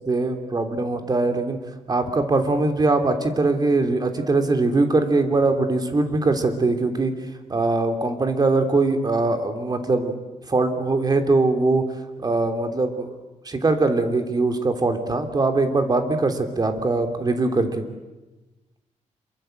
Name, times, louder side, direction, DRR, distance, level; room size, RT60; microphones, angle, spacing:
voice 1, 0.1-1.6 1.9-7.1 7.5-10.1 10.5-11.8 12.2-13.2 13.4-17.8, right 3 dB, 30° right, 6 dB, 3.0 m, -21 dB
27.0 x 23.0 x 8.0 m, 1.1 s
cardioid pair, 115°, 13 cm